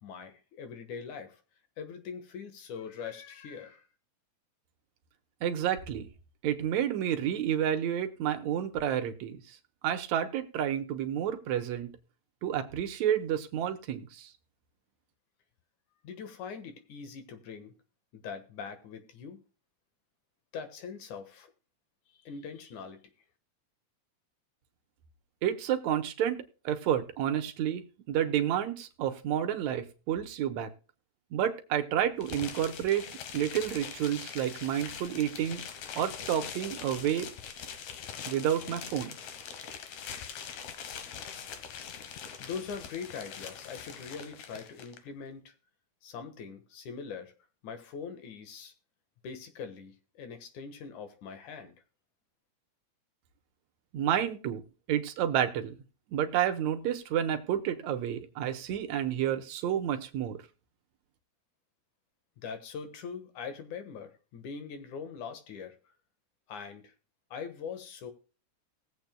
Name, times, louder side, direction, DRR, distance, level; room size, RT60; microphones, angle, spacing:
voice 1, 0.0-1.4 1.8-3.9 16.0-17.8 18.1-19.4 20.5-21.5 22.1-23.0 42.4-45.5 46.0-47.3 47.6-48.7 49.2-51.7 62.4-65.9 66.5-66.9 67.3-68.1, left 6 dB, 90° left, 8 dB, 2.9 m, -42 dB
voice 2, 5.4-6.1 6.4-9.4 9.8-11.9 12.4-14.3 25.4-30.7 31.3-33.0 33.3-35.6 36.0-37.3 38.3-39.1 53.9-54.6 54.9-55.8 56.1-60.4, right 10 dB, 75° right, 7 dB, 2.3 m, -30 dB
sound 1, 32.2-45.0, left 7 dB, 70° left, 2.5 m, -43 dB
19.5 x 7.8 x 2.2 m, 0.36 s
omnidirectional pair, 3.3 m